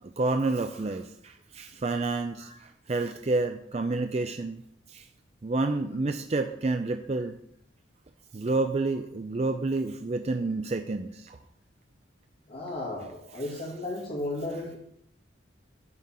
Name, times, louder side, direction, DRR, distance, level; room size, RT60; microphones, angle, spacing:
voice 1, 0.0-4.6 4.9-5.1 5.4-7.4 8.3-11.4, right 3 dB, 35° right, 6 dB, 0.4 m, -29 dB
voice 2, 12.5-14.8, left 1 dB, 50° left, -8 dB, 2.3 m, -34 dB
9.5 x 3.9 x 7.3 m, 0.72 s
head